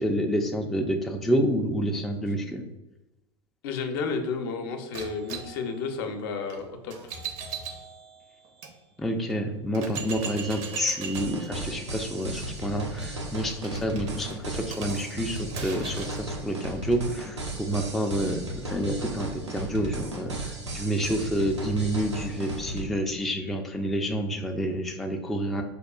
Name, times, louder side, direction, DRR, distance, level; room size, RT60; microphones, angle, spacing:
voice 1, 0.0-2.6 9.0-25.6, equal, ahead, 2 dB, 0.3 m, -28 dB
voice 2, 3.6-6.9, left 4 dB, 55° left, 5 dB, 0.5 m, -31 dB
sound 1, 4.9-8.7 9.3-9.4 9.7-16.3, right 6 dB, 45° right, 0.6 m, -40 dB
sound 2, 11.2-22.9, right 1 dB, 90° right, 0.6 m, -35 dB
5.1 x 2.3 x 2.3 m, 1.0 s
hypercardioid pair, 90°, 14 cm